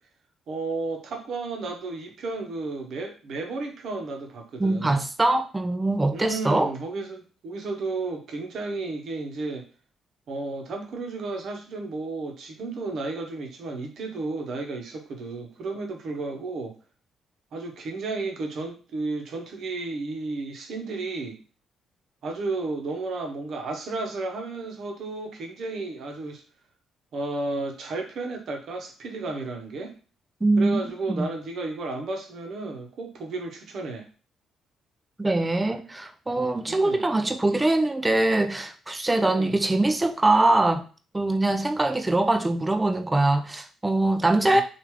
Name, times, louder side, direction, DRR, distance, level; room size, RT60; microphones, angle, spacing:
voice 1, 0.5-5.0 6.1-9.7 10.3-16.8 17.5-21.4 22.2-26.4 27.1-30.0 30.6-34.1 36.7-37.1 39.2-39.6 44.5-44.6, right 3 dB, 65° right, 0.8 m, -33 dB
voice 2, 4.6-6.7 30.4-30.8 31.1-31.3 35.2-40.8 41.1-44.6, right 2 dB, 15° right, 0.4 m, -23 dB
3.2 x 2.4 x 3.1 m
cardioid pair, 90°, 0 cm